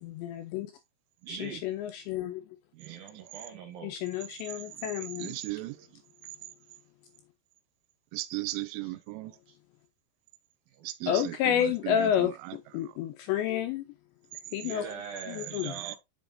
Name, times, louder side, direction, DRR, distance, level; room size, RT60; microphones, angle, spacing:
voice 1, 0.0-0.7 1.3-2.4 3.8-5.4 11.1-13.8 14.5-14.8 15.3-15.7, left 10 dB, 80° left, 2.6 m, -30 dB
voice 2, 1.3-1.6 2.8-3.9 5.7-5.8 8.8-8.9 9.2-9.6 10.7-10.9 14.6-16.0, right 6 dB, 65° right, 2.6 m, -43 dB
voice 3, 5.2-5.8 8.1-9.3 10.8-12.6 15.6-16.0, right 18 dB, 85° right, 3.0 m, -37 dB
7.7 x 5.3 x 2.5 m
omnidirectional pair, 5.6 m